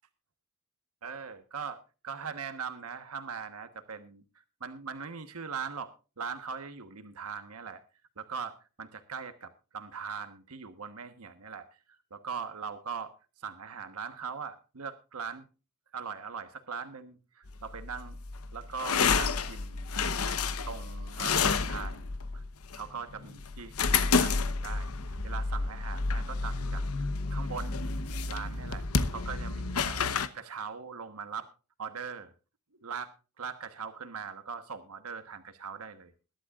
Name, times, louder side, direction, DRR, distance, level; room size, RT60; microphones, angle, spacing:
voice 1, 1.0-4.2 4.6-5.9 6.2-7.8 8.2-11.7 12.1-13.1 13.4-15.5 15.9-18.2 18.5-19.9 20.7-22.4 22.7-26.8 27.3-27.8 28.3-28.8 29.1-30.1 30.3-31.5 31.8-32.3 32.8-36.1, right 6 dB, 90° right, 9 dB, 1.3 m, -40 dB
sound 1, 17.5-30.3, left 4 dB, 90° left, 1.0 m, -30 dB
21.5 x 11.5 x 2.4 m, 0.32 s
head